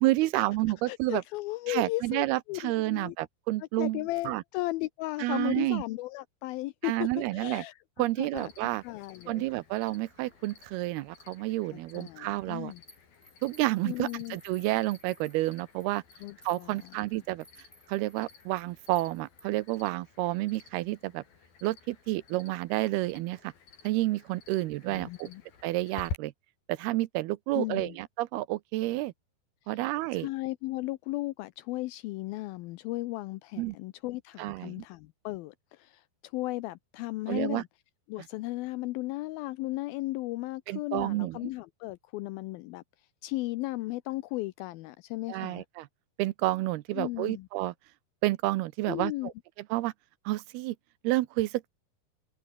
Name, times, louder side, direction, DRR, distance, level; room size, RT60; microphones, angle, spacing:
voice 1, 0.0-1.2 1.7-4.4 5.2-5.8 6.8-7.6 8.0-8.8 9.3-12.7 13.4-16.0 16.5-17.5 17.9-21.2 21.6-23.5 23.8-25.3 25.6-26.3 26.7-29.1 29.7-30.3 33.6-33.8 34.4-34.8 37.3-37.6 40.7-41.4 45.3-45.9 46.2-47.7 48.2-49.3 49.7-49.9 50.3-50.8 51.0-51.7, right 18 dB, 85° right, 2.7 m, -30 dB
voice 2, 0.9-3.2 3.8-8.5 8.8-9.5 11.7-12.8 13.8-14.4 16.2-16.9 24.6-25.4 27.5-28.0 30.1-37.7 38.1-42.8 43.2-45.6 46.9-47.5 48.9-49.3, left 19 dB, 80° left, 2.4 m, -36 dB
Cricket, 8.4-26.2, left 6 dB, 65° left, 6.2 m, -50 dB
sound 1, 12.9-19.7, equal, 5° left, 4.9 m, -58 dB
omnidirectional pair, 4.5 m